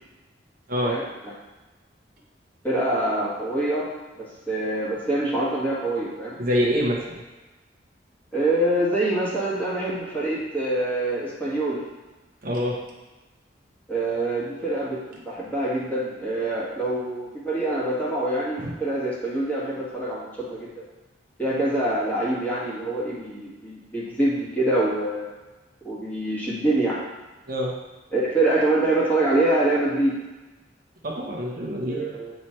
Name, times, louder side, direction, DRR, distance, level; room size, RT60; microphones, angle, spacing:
voice 1, 0.8-1.3 2.6-3.9 4.2-6.4 8.3-11.8 13.9-20.7 21.4-25.3 25.8-27.0 28.1-30.1 31.9-32.3, right 1 dB, 10° left, -7 dB, 1.6 m, -25 dB
voice 2, 6.4-7.2 12.4-12.8 18.6-18.8 27.5-27.7 31.0-32.0, equal, 55° right, -2 dB, 1.0 m, -25 dB
7.8 x 3.2 x 4.3 m, 1.2 s
head